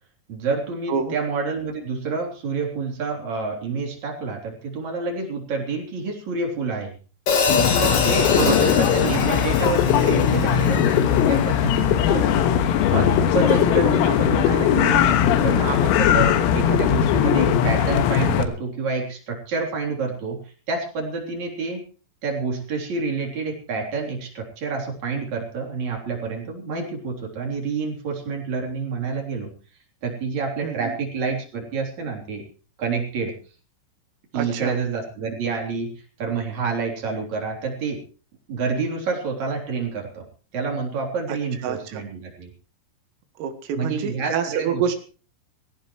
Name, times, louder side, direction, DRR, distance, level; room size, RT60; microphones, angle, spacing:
voice 1, 0.3-6.9 7.8-12.5 12.9-15.0 15.4-20.4 20.7-21.8 22.2-29.5 30.0-32.4 32.8-33.3 34.3-35.9 36.2-38.0 38.5-40.3 40.5-42.5 43.7-45.0, right 4 dB, 35° right, 0 dB, 4.2 m, -28 dB
Hi-hat, 7.3-11.5, left 4 dB, 45° left, 2.0 m, -25 dB
sound 1, 7.5-18.5, left 9 dB, 90° left, 4.1 m, -19 dB
voice 2, 8.3-8.7 30.6-30.9 34.3-34.8 41.3-41.4 41.6-42.0 43.4-45.0, right 7 dB, 80° right, 7 dB, 4.3 m, -27 dB
21.0 x 16.5 x 3.2 m, 0.38 s
omnidirectional pair, 6.0 m